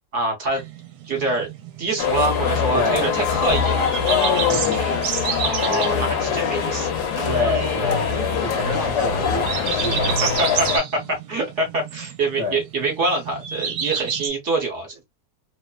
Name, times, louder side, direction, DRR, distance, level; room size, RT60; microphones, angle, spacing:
voice 1, 0.1-0.6 1.0-1.5 1.8-3.8 5.4-8.4 9.7-15.0, right 2 dB, 50° right, 1.2 m, -25 dB
sound 1, 0.5-14.3, right 7 dB, 75° right, 1.1 m, -31 dB
sound 2, 2.0-10.8, left 6 dB, 80° left, 1.2 m, -23 dB
voice 2, 2.7-3.0 4.4-5.0 7.2-9.5 9.8-10.3 11.0-11.1 12.4-12.6, left 3 dB, 35° left, 0.5 m, -27 dB
2.8 x 2.0 x 2.3 m
omnidirectional pair, 1.7 m